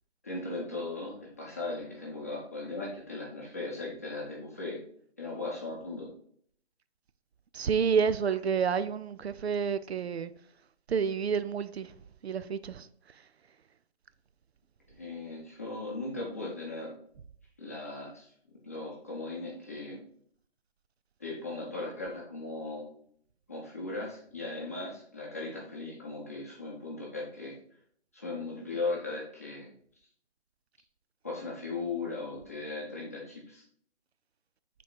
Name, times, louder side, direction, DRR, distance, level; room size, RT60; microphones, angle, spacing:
voice 1, 0.2-4.8 5.2-6.1 14.9-17.0 17.6-18.3 18.6-20.0 21.2-22.9 23.5-27.5 28.1-29.7 31.2-33.6, left 3 dB, 15° left, 0.7 m, -38 dB
voice 2, 7.5-10.3 10.9-11.9 12.2-12.9, right 6 dB, 70° right, 0.5 m, -29 dB
5.9 x 3.8 x 4.5 m
hypercardioid pair, 170°, 33 cm